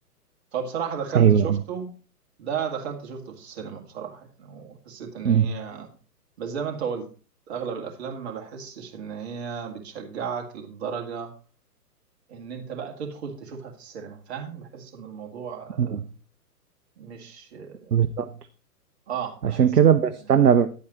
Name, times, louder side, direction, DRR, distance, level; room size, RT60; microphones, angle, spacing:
voice 1, 0.5-1.9 2.4-5.9 6.4-7.1 7.5-11.3 12.3-16.0 17.0-17.9 19.1-19.7, right 7 dB, 45° right, 2.0 m, -34 dB
voice 2, 1.1-1.6 5.2-5.5 15.8-16.0 17.9-18.3 19.4-20.8, right 8 dB, 75° right, 0.8 m, -19 dB
9.9 x 8.4 x 3.0 m
figure-of-eight pair, 120°, 47 cm